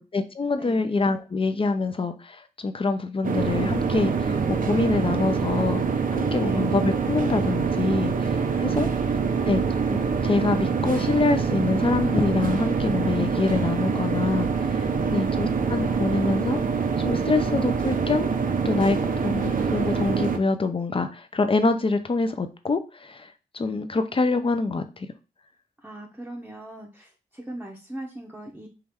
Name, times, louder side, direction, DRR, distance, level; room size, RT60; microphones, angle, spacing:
voice 1, 0.0-5.8 6.1-8.9 9.5-9.6 9.9-10.0 10.2-16.6 17.0-18.3 18.6-25.1, left 3 dB, 35° left, 8 dB, 0.7 m, -25 dB
voice 2, 0.6-0.9 6.4-6.8 14.9-15.4 25.8-28.7, right 1 dB, 10° right, -2 dB, 0.9 m, -41 dB
sound 1, 3.2-20.4, right 5 dB, 60° right, 0.7 m, -25 dB
4.6 x 3.2 x 3.6 m, 0.32 s
cardioid pair, 80°, 16 cm